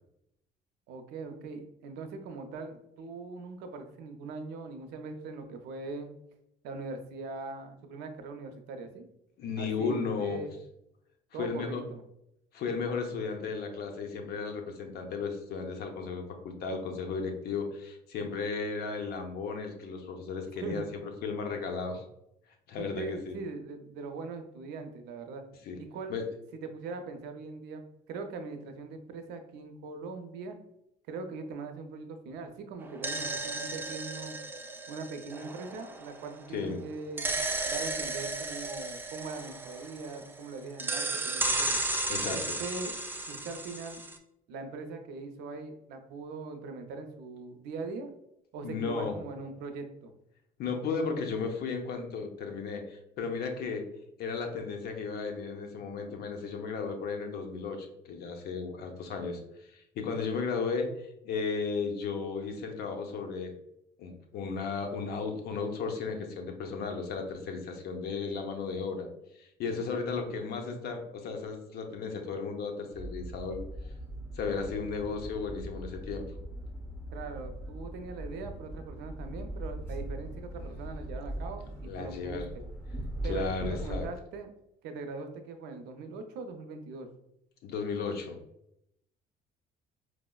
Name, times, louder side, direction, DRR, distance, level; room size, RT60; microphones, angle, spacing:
voice 1, 0.9-6.1 6.6-9.1 9.6-10.5 11.3-12.0 20.6-20.9 22.8-25.4 25.8-26.2 26.5-30.6 31.1-34.4 34.9-37.3 37.7-41.8 42.3-43.0 43.3-44.0 44.5-48.1 48.5-50.1 77.1-82.4 83.2-84.5 84.8-87.1, right 4 dB, 85° right, 6 dB, 0.5 m, -41 dB
voice 2, 9.4-10.4 11.4-11.8 12.5-22.0 22.7-23.4 25.7-25.8 26.1-26.3 36.5-36.8 42.1-42.6 48.6-49.2 50.6-53.9 54.2-59.4 59.7-63.5 64.0-69.1 69.4-73.6 74.3-76.3 81.9-82.5 83.3-84.1 87.6-88.4, left 5 dB, 70° left, 4 dB, 0.6 m, -34 dB
sound 1, 32.8-36.5 37.2-40.4 40.8-44.2, right 2 dB, 10° right, 0.3 m, -34 dB
sound 2, 72.9-84.1, right 1 dB, 10° left, 1.0 m, -40 dB
4.6 x 2.0 x 2.2 m, 0.81 s
cardioid pair, 110°, 17 cm